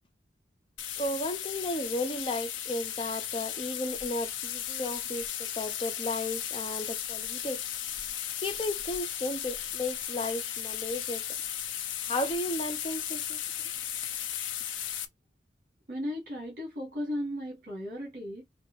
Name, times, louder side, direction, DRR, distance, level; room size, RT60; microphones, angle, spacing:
sound 1, 0.8-15.0, left 10 dB, 85° left, 0.8 m, -36 dB
voice 1, 1.0-7.6 8.4-11.2 12.1-13.7, left 1 dB, 25° left, 0.8 m, -34 dB
voice 2, 15.9-18.4, equal, 50° right, 2.5 m, -35 dB
5.1 x 3.0 x 3.2 m
head